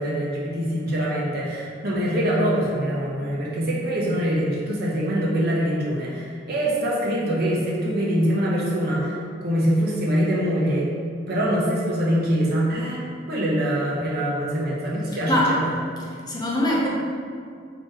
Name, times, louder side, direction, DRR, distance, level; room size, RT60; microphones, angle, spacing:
voice 1, 0.0-9.2 9.4-10.9 11.3-15.4, equal, 55° right, -5 dB, 0.9 m, -24 dB
voice 2, 15.1-15.6 16.0-16.9, left 1 dB, 20° left, -4 dB, 0.6 m, -23 dB
4.3 x 2.9 x 3.6 m, 2.2 s
head